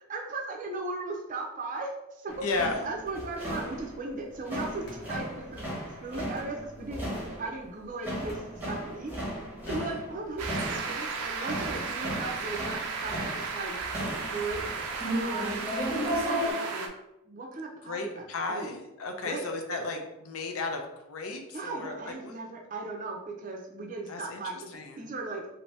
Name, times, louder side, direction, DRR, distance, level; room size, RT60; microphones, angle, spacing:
voice 1, 0.1-2.4 2.8-5.7 6.0-7.1 7.4-9.1 9.7-13.8 14.3-14.6 15.2-15.7 16.2-16.9 17.2-18.7 19.2-19.4 21.5-24.7 25.0-25.4, right 3 dB, 35° right, 0 dB, 0.5 m, -37 dB
sound 1, 2.3-16.5, equal, 10° right, 0.8 m, -35 dB
voice 2, 2.4-2.9 9.7-10.0 17.8-22.4 24.1-25.0, left 3 dB, 75° left, 4 dB, 0.5 m, -34 dB
sound 2, 3.1-10.4, equal, 50° left, 1.1 m, -54 dB
sound 3, 10.4-16.9, right 4 dB, 90° right, 0.5 m, -35 dB
2.7 x 2.6 x 3.2 m, 0.90 s
head